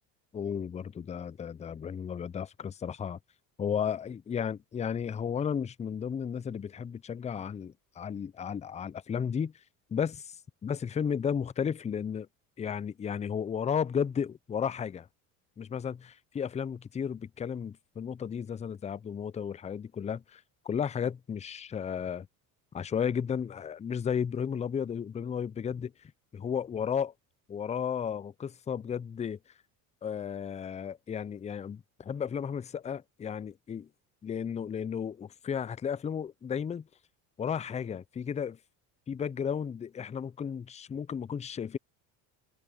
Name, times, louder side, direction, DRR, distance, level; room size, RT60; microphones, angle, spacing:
voice 1, 0.3-3.2 3.6-9.5 9.9-12.3 12.6-15.1 15.6-22.3 22.7-27.1 27.5-29.4 30.0-33.9 34.2-36.9 37.4-38.6 39.1-41.8, left 7 dB, 15° left, 0.4 m, -34 dB
supercardioid pair, 85°, 45 cm